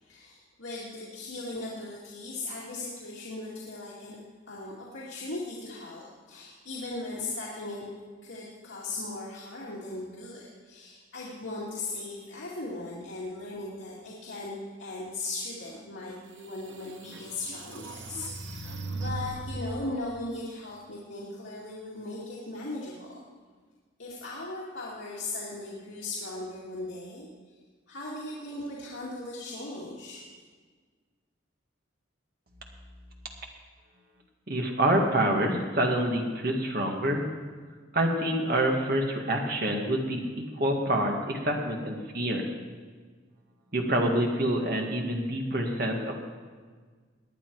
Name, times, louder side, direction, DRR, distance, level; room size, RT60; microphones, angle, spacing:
voice 1, 0.0-4.2 4.5-7.9 8.2-23.2 24.0-27.3 27.9-30.2, left 2 dB, 80° left, -7 dB, 2.4 m, -38 dB
sound 1, 16.0-16.1 16.7-19.8, right 2 dB, 70° right, 1.1 m, -38 dB
voice 2, 34.5-37.3 37.9-42.4 43.7-46.2, right 1 dB, 50° right, 1 dB, 1.9 m, -27 dB
18.5 x 10.0 x 4.7 m, 1.5 s
head